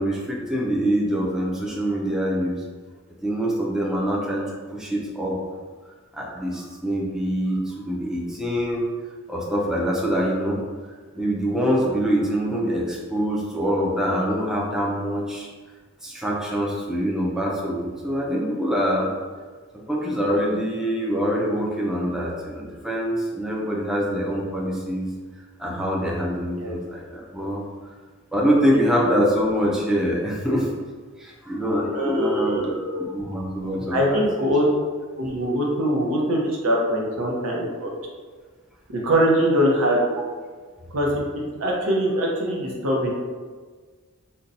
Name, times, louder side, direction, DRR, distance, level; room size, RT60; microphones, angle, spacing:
voice 1, 0.0-2.6 3.2-4.4 4.7-5.4 6.1-8.9 9.3-10.6 11.2-15.5 16.0-19.1 19.9-25.1 25.6-27.7 28.3-30.8 31.2-34.5, equal, 5° right, -3 dB, 0.4 m, -24 dB
voice 2, 31.9-33.0 33.9-34.7 35.2-37.9 38.9-40.1 40.9-41.2 41.6-43.1, equal, 85° right, -2 dB, 0.7 m, -22 dB
2.7 x 2.2 x 3.9 m, 1.5 s
head